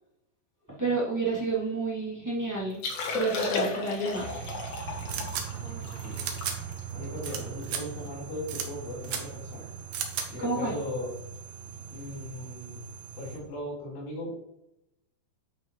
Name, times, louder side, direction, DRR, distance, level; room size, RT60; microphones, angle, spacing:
voice 1, 0.8-2.8 3.1-4.4 10.4-10.7, right 3 dB, 10° right, -7 dB, 1.2 m, -29 dB
Liquid, 2.7-8.1 8.5-8.6 8.9-9.2 9.5-9.7 10.3-10.5 12.0-12.1, left 3 dB, 90° left, 1.4 m, -35 dB
sound 1, 4.1-13.4, right 8 dB, 55° right, 1.9 m, -41 dB
sound 2, 5.1-5.4 6.2-6.5 7.2-7.4 7.6-7.8 8.5-8.7 9.0-9.2 9.9-10.2, right 8 dB, 80° right, 1.9 m, -33 dB
voice 2, 5.5-6.3 6.9-9.7 10.3-11.1 11.9-12.8 13.2-14.4, left 1 dB, 70° left, -6 dB, 5.5 m, -38 dB
10.5 x 5.9 x 3.2 m, 0.84 s
omnidirectional pair, 5.1 m